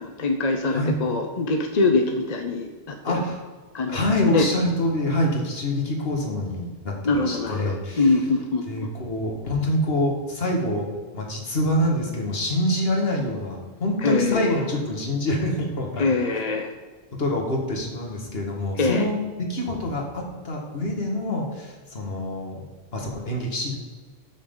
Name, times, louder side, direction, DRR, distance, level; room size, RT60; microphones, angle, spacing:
voice 1, 0.0-3.2 3.7-4.4 7.0-8.9 14.0-14.6 16.0-16.7 18.8-19.1, left 3 dB, 40° left, 4 dB, 0.8 m, -24 dB
voice 2, 3.0-3.4 3.9-8.2 8.7-10.9 11.1-16.0 17.2-22.7 22.9-23.7, left 1 dB, 60° left, 0 dB, 2.1 m, -26 dB
12.5 x 6.5 x 3.9 m, 1.4 s
omnidirectional pair, 1.1 m